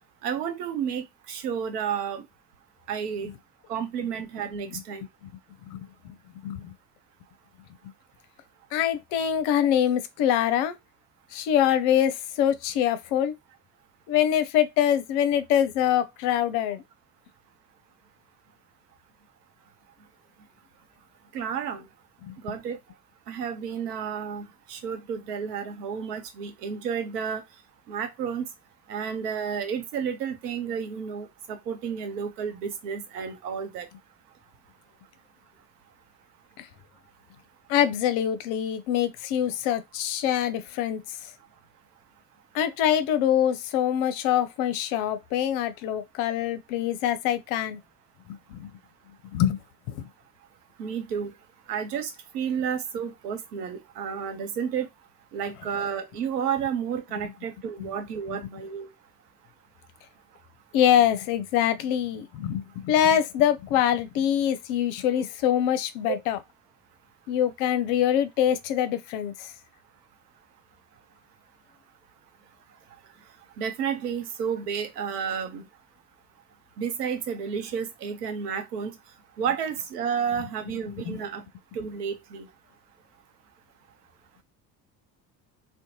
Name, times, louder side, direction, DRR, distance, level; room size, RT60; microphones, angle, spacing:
voice 1, 0.2-2.2 2.9-3.3 3.7-5.0 21.3-21.8 22.4-22.8 23.3-27.4 27.9-28.5 28.9-33.9 50.8-51.3 51.7-54.9 55.3-58.9 66.1-66.2 73.6-75.6 76.8-78.9 79.4-81.4 81.7-82.5, right 7 dB, 75° right, 0.7 m, -31 dB
voice 2, 5.7-6.2 6.4-6.7 8.7-10.7 11.3-13.3 14.1-16.8 22.3-22.4 36.6-36.7 37.7-41.2 42.5-47.8 48.3-48.7 49.3-49.6 49.9-50.1 57.8-57.9 58.3-58.4 60.7-66.4 67.3-69.5 81.1-81.2, left 10 dB, 60° left, 0.6 m, -24 dB
2.6 x 2.1 x 2.8 m
figure-of-eight pair, 60°, 48 cm